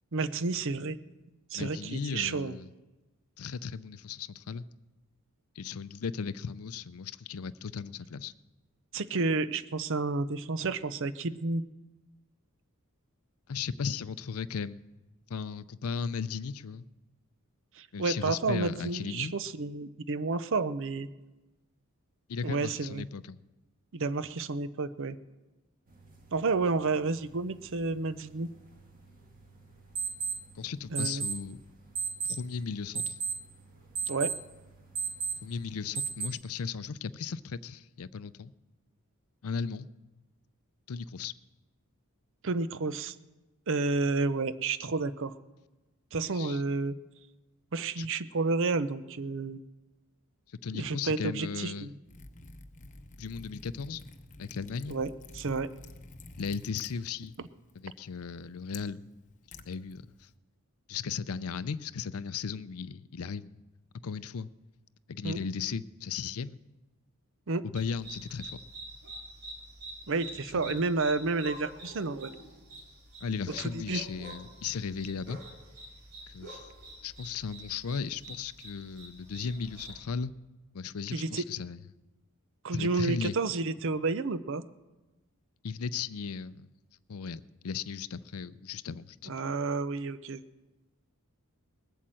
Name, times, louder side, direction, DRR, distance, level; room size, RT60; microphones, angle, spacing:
voice 1, 0.1-1.0 1.5-2.6 8.9-11.6 17.8-21.1 22.4-23.0 23.9-25.2 26.3-28.5 30.9-31.2 34.1-34.3 42.4-43.1 43.7-45.4 46.1-46.9 47.7-49.6 50.7-51.9 54.9-55.7 65.2-65.4 67.5-67.6 70.1-72.3 73.6-74.0 81.1-81.4 82.6-84.6 89.3-90.4, right 3 dB, 60° right, 14 dB, 0.6 m, -30 dB
voice 2, 1.5-2.7 3.4-4.6 5.6-8.3 13.5-14.8 15.3-16.8 17.9-19.3 22.3-23.4 30.6-31.6 32.2-33.2 35.4-38.5 39.4-39.9 40.9-41.3 46.3-46.6 48.0-48.1 50.5-51.9 53.2-54.0 54.4-55.0 56.4-57.3 57.7-59.1 59.5-60.3 60.9-63.6 64.0-64.5 65.1-66.6 67.6-68.6 70.5-70.8 73.2-75.4 76.3-76.7 77.0-80.3 80.7-81.8 82.7-83.3 85.6-86.7 87.1-89.3, left 6 dB, 70° left, 16 dB, 0.5 m, -36 dB
sound 1, 25.9-36.3, right 6 dB, 40° right, 1.8 m, -38 dB
Liquid, 52.0-60.3, left 2 dB, 35° left, 0.8 m, -50 dB
sound 2, 67.8-80.0, right 1 dB, 80° right, 3.9 m, -47 dB
20.0 x 8.4 x 7.7 m, 1.1 s
head